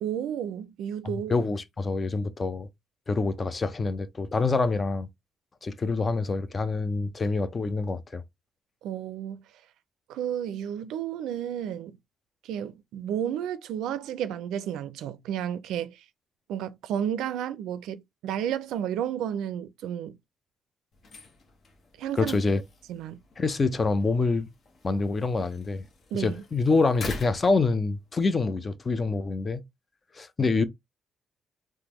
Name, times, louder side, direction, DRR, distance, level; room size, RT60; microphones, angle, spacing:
voice 1, 0.0-1.4 8.8-9.4 10.1-12.0 12.4-16.0 16.5-20.2 22.0-22.4 22.9-23.2 26.1-26.4, right 9 dB, 85° right, 0.4 m, -32 dB
voice 2, 1.0-2.7 3.1-5.1 5.6-8.2 22.2-22.6 23.4-24.5 24.8-25.8 26.1-29.6 30.1-30.6, left 3 dB, 30° left, 0.5 m, -26 dB
sound 1, 20.9-28.4, left 3 dB, 55° left, 0.9 m, -45 dB
3.5 x 2.1 x 3.0 m
cardioid pair, 90°, 0 cm